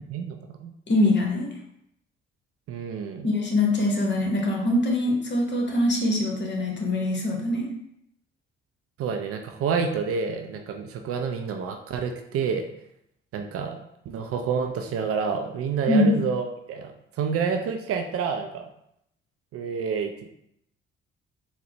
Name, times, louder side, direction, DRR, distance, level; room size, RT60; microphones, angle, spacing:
voice 1, 0.9-1.5 3.2-7.7 15.9-16.2, left 1 dB, 35° left, 0 dB, 1.0 m, -23 dB
voice 2, 2.7-3.3 9.0-12.7 13.3-13.8 14.1-16.9 17.2-18.7 19.5-20.3, right 6 dB, 50° right, 5 dB, 0.4 m, -28 dB
4.0 x 2.1 x 2.8 m, 0.75 s
hypercardioid pair, 45°, 30 cm